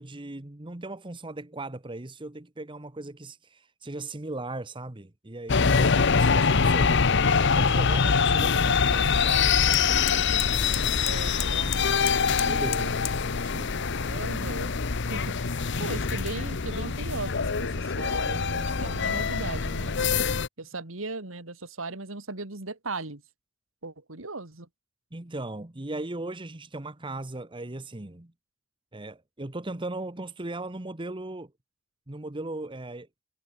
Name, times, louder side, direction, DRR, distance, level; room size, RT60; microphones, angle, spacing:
voice 1, 0.0-6.9 7.5-10.3 12.4-12.8 13.4-13.9 25.1-28.3 28.9-31.5 32.1-33.1, right 2 dB, 25° right, 1.2 m, -38 dB
sound 1, 5.5-20.5, left 5 dB, 60° left, 0.9 m, -24 dB
sound 2, 8.5-13.3, left 13 dB, 85° left, 1.2 m, -41 dB
voice 2, 11.0-12.2 12.5-12.9 14.0-14.8 15.1-20.1 20.6-23.2 23.8-24.7, right 3 dB, 85° right, 2.6 m, -37 dB
head